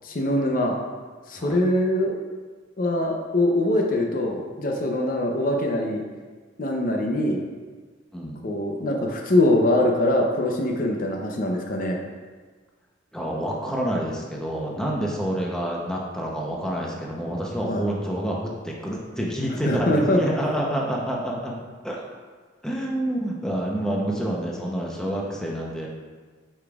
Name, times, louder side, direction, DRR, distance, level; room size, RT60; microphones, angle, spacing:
voice 1, 0.0-0.7 1.3-2.2 2.8-6.0 6.6-7.4 8.4-12.0 17.7-17.8 19.7-20.2, left 1 dB, 45° left, 1 dB, 0.6 m, -23 dB
voice 2, 13.1-21.5 21.8-22.0 22.6-25.9, right 1 dB, 5° left, -3 dB, 0.7 m, -28 dB
8.6 x 5.0 x 2.4 m, 1.4 s
head